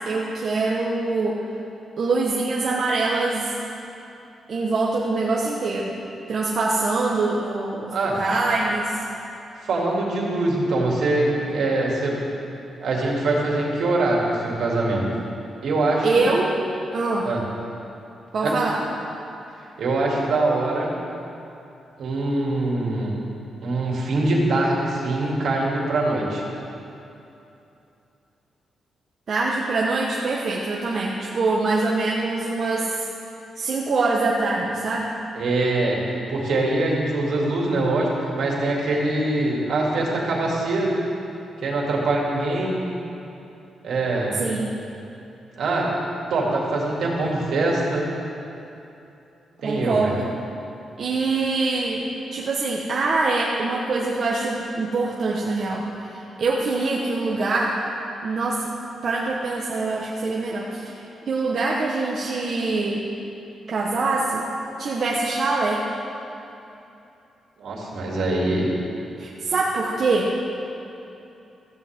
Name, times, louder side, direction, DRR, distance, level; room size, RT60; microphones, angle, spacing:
voice 1, 0.1-1.4 2.0-3.5 4.5-5.9 6.3-9.0 16.0-16.6 16.9-17.3 18.3-18.8 26.2-26.3 29.3-32.9 33.6-35.1 44.3-44.7 49.6-50.2 51.0-52.0 52.3-57.8 58.2-58.7 59.0-63.0 63.7-64.4 64.8-65.8 69.2-70.3, right 3 dB, 50° right, -3 dB, 1.2 m, -24 dB
voice 2, 9.6-12.2 12.8-15.0 15.6-16.3 17.2-17.4 18.4-18.5 19.8-20.9 22.0-23.1 23.6-26.4 35.3-36.0 36.3-38.1 38.4-41.0 41.6-42.8 43.8-44.4 45.6-45.9 46.3-48.1 49.6-50.1 67.6-68.7, right 2 dB, 75° right, -3 dB, 2.9 m, -23 dB
15.5 x 14.5 x 3.7 m, 2.8 s
cardioid pair, 125°, 0 cm